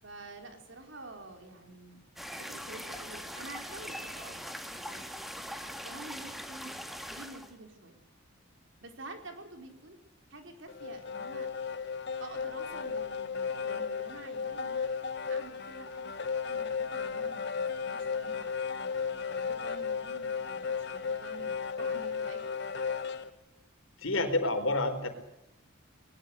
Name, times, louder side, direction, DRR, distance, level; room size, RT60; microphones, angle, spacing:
voice 1, 0.0-2.0 2.4-5.4 5.8-6.8 7.1-8.0 8.8-10.0 10.3-11.5 12.2-14.9 15.3-22.5, right 2 dB, 65° right, 4 dB, 4.5 m, -49 dB
sound 1, 2.2-7.5, equal, ahead, 2.1 m, -41 dB
sound 2, 10.7-23.3, left 6 dB, 55° left, 1.6 m, -35 dB
voice 2, 24.0-25.1, left 2 dB, 80° left, 8 dB, 4.2 m, -28 dB
21.5 x 20.5 x 8.1 m, 0.86 s
head